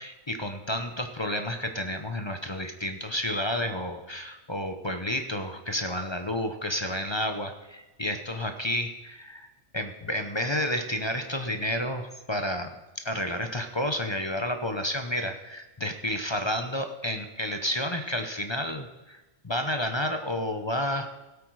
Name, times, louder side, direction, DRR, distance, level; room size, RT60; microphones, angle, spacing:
voice 1, 0.0-9.5 9.7-21.1, left 1 dB, 25° left, 6 dB, 0.8 m, -31 dB
16.5 x 8.4 x 4.8 m, 1.1 s
omnidirectional pair, 1.2 m